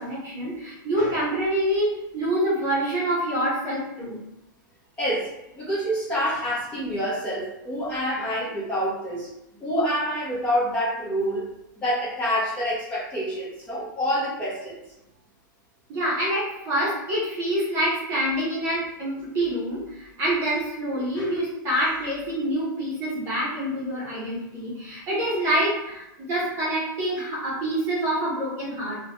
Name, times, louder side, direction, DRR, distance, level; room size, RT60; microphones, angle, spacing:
voice 1, 0.0-4.2 15.9-29.0, right 1 dB, 25° right, -8 dB, 1.2 m, -26 dB
voice 2, 5.0-9.3 9.6-11.5 11.8-14.7 21.1-21.3, equal, 10° left, -10 dB, 1.2 m, -27 dB
3.8 x 2.5 x 3.1 m, 0.89 s
supercardioid pair, 170°, 11 cm